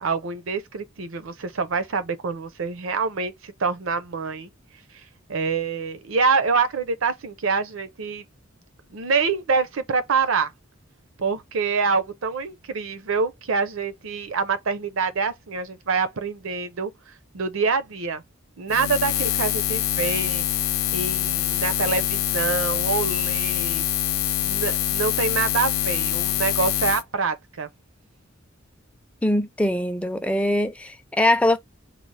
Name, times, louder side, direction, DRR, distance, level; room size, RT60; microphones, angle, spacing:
voice 1, 0.0-4.5 5.3-8.2 8.9-10.5 11.2-16.9 17.3-18.2 18.6-20.5 20.9-23.9 24.4-27.7, right 5 dB, 70° right, 0.6 m, -26 dB
Buzz, 18.7-27.0, left 12 dB, 80° left, 0.4 m, -25 dB
voice 2, 29.2-31.6, left 1 dB, 5° left, 0.4 m, -22 dB
3.9 x 2.0 x 3.2 m
head